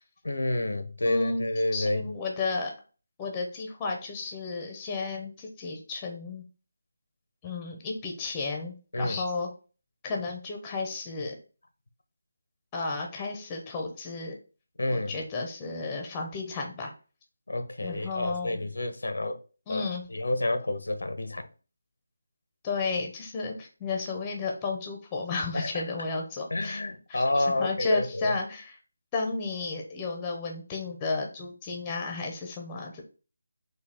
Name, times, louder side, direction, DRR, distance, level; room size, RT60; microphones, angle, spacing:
voice 1, 0.2-2.0 8.9-9.2 14.8-15.2 17.5-19.4 19.7-21.5 25.5-25.8 26.5-28.3, left 2 dB, 80° left, 0.8 m, -29 dB
voice 2, 1.0-2.7 3.2-6.4 7.4-9.5 10.0-11.4 12.7-14.3 14.9-16.9 17.8-18.6 19.7-20.0 22.6-26.8 27.1-28.8 29.1-33.0, left 3 dB, 15° left, 0.7 m, -33 dB
4.1 x 2.7 x 4.2 m
figure-of-eight pair, 170°, 0 cm